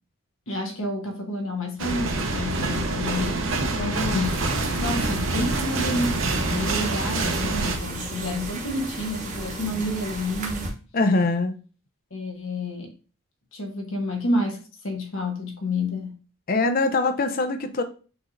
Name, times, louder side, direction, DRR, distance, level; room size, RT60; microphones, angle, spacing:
voice 1, 0.5-3.4 4.1-4.3 4.8-10.7 12.1-12.9 13.5-16.2, left 1 dB, 65° left, 1.1 m, -29 dB
sound 1, 1.8-7.8, right 2 dB, 65° right, 0.7 m, -26 dB
voice 2, 3.7-4.2 10.9-11.6 16.5-17.8, left 3 dB, 45° left, 0.5 m, -23 dB
sound 2, 4.2-10.7, right 2 dB, 35° right, 0.9 m, -34 dB
6.1 x 3.1 x 2.5 m
head